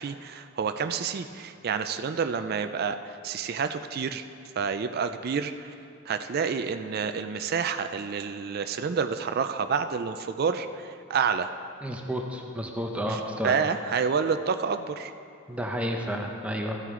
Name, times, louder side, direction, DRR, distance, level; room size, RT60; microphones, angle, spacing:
voice 1, 0.0-4.2 4.6-5.7 6.1-11.5 13.1-15.1, right 6 dB, 50° right, 9 dB, 0.4 m, -29 dB
voice 2, 11.8-13.6 15.5-16.8, equal, 5° right, 1 dB, 0.7 m, -31 dB
13.5 x 9.0 x 3.7 m, 2.5 s
head